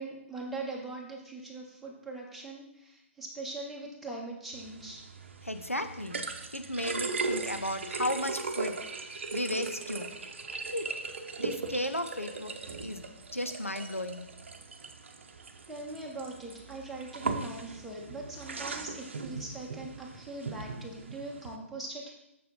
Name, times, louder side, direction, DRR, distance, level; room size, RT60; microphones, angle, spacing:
voice 1, 0.0-5.0 15.7-22.1, right 2 dB, ahead, -4 dB, 1.4 m, -41 dB
sound 1, 4.5-21.6, right 4 dB, 60° right, 0.8 m, -38 dB
voice 2, 5.4-6.2 6.5-8.8 9.0-10.1 10.7-10.9 11.4-13.1 13.3-14.3, left 1 dB, 90° left, 8 dB, 0.8 m, -34 dB
6.7 x 6.7 x 3.9 m, 0.81 s
figure-of-eight pair, 125°, 7 cm